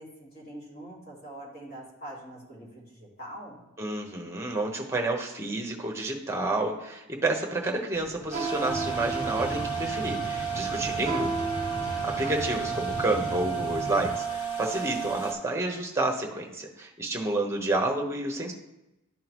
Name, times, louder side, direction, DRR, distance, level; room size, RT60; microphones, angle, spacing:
voice 1, 0.0-3.7 12.2-12.4, right 1 dB, 45° left, -6 dB, 2.4 m, -44 dB
voice 2, 3.8-11.3 11.8-18.5, right 2 dB, 10° right, 2 dB, 0.9 m, -30 dB
sound 1, 7.9-13.1, right 2 dB, 40° right, 0.6 m, -37 dB
sound 2, 8.3-15.3, right 7 dB, 90° left, 1.1 m, -32 dB
sound 3, 8.6-14.1, equal, 70° left, 2.3 m, -38 dB
11.5 x 3.8 x 3.0 m, 0.96 s
head